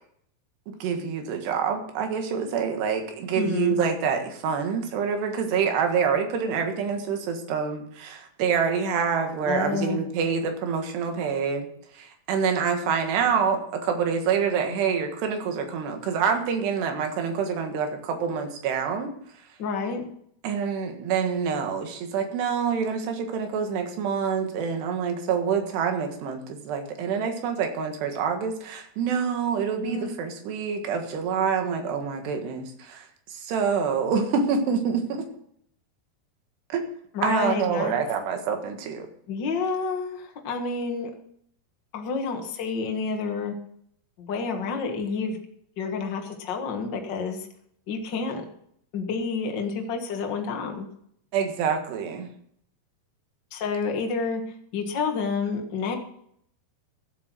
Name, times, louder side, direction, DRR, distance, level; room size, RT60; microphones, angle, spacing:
voice 1, 0.7-11.7 11.9-19.1 20.4-35.3 36.7-36.8 37.2-39.1 51.3-52.3, right 6 dB, 85° right, 5 dB, 3.8 m, -26 dB
voice 2, 3.3-3.8 9.4-10.0 19.6-20.1 29.8-30.1 37.1-38.0 39.3-41.1 41.9-43.5 44.2-45.4 45.8-47.5 47.9-48.4 48.9-50.8 53.5-54.4 54.7-56.0, left 5 dB, 80° left, 3 dB, 1.0 m, -29 dB
14.5 x 8.2 x 6.1 m, 0.68 s
omnidirectional pair, 4.7 m